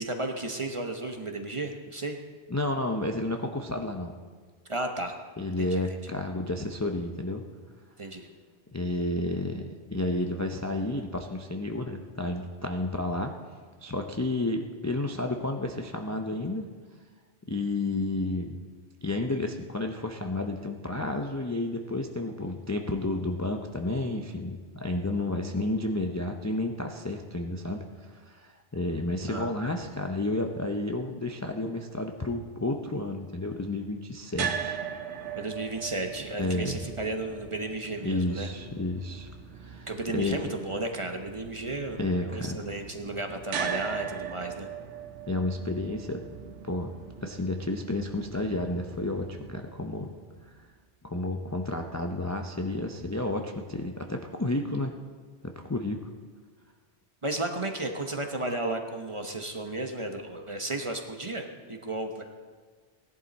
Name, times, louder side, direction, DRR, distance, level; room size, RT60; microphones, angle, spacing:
voice 1, 0.0-2.2 4.7-5.1 5.6-5.8 8.0-8.3 29.3-29.5 35.4-38.5 39.9-44.7 57.2-62.2, right 2 dB, 30° right, 4 dB, 0.9 m, -33 dB
voice 2, 2.5-4.1 5.4-7.4 8.7-13.4 13.8-16.7 17.5-18.6 19.0-34.8 36.4-36.8 38.0-39.9 40.1-40.4 42.0-42.7 45.3-46.9 47.2-50.1 51.0-54.9 55.4-56.1, left 2 dB, 20° left, 3 dB, 0.5 m, -31 dB
sound 1, 34.3-50.5, right 7 dB, 85° right, 1.1 m, -40 dB
17.0 x 11.0 x 4.2 m, 1.6 s
omnidirectional pair, 1.2 m